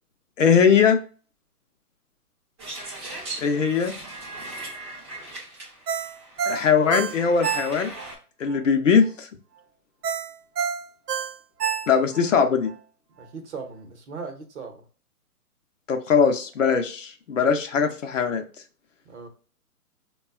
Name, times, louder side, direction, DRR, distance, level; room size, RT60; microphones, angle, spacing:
voice 1, 0.4-1.0 3.4-3.9 6.5-7.9 8.4-9.3 11.9-12.7 15.9-18.4, left 6 dB, 55° left, 6 dB, 0.6 m, -20 dB
sound 1, 2.6-8.2, right 2 dB, 20° right, 0.6 m, -39 dB
Ringtone, 5.9-8.1 8.5-8.6 10.0-12.3 12.7-12.8, right 7 dB, 75° right, 0.6 m, -28 dB
voice 2, 13.2-14.8 19.0-19.3, right 4 dB, 45° right, 4 dB, 0.9 m, -38 dB
3.7 x 2.2 x 2.3 m, 0.39 s
figure-of-eight pair, 135°, 47 cm